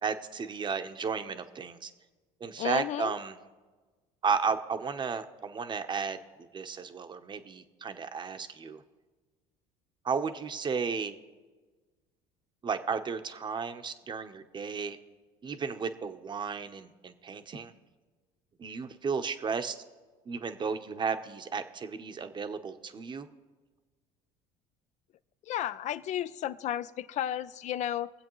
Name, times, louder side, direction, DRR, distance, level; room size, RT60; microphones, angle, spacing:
voice 1, 0.0-1.9 2.4-3.4 4.2-6.2 6.5-8.8 10.0-11.2 12.6-15.0 15.4-17.7 18.6-19.8 20.3-23.3, right 5 dB, 30° right, 9 dB, 0.9 m, -33 dB
voice 2, 2.6-3.1 25.4-28.1, left 11 dB, 55° left, 15 dB, 0.5 m, -33 dB
21.5 x 7.9 x 3.1 m, 1.3 s
supercardioid pair, 90°, 15 cm